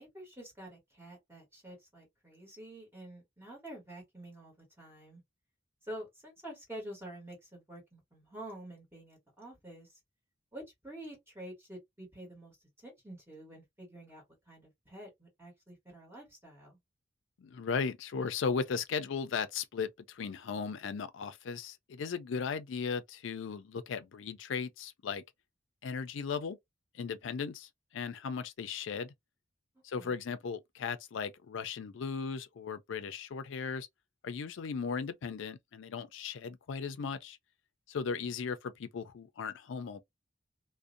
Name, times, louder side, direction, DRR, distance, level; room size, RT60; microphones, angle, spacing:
voice 1, 0.0-5.2 5.8-10.0 10.5-16.8 29.9-30.2, right 1 dB, 15° right, 1.3 m, -48 dB
voice 2, 17.4-25.2 25.8-26.6 26.9-29.1 29.8-33.9 34.2-37.4 37.9-40.0, left 5 dB, 75° left, 0.4 m, -37 dB
2.5 x 2.1 x 2.5 m
head